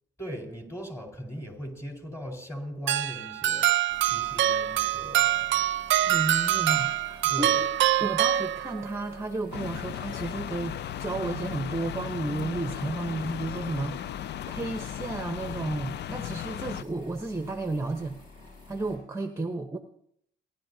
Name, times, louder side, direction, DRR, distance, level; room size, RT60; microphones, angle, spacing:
voice 1, 0.2-3.7 4.1-5.6 7.3-7.6, equal, 15° left, 2 dB, 4.4 m, -39 dB
sound 1, 2.9-9.0, right 13 dB, 70° right, 0.6 m, -25 dB
sound 2, 3.9-19.0, left 2 dB, 40° left, 6.1 m, -50 dB
voice 2, 6.1-7.5 8.0-18.2 18.7-19.8, right 2 dB, 15° right, 6 dB, 0.9 m, -33 dB
sound 3, 9.5-16.8, left 11 dB, 60° left, 0.4 m, -36 dB
30.0 x 11.5 x 2.8 m, 0.69 s
cardioid pair, 90°, 20 cm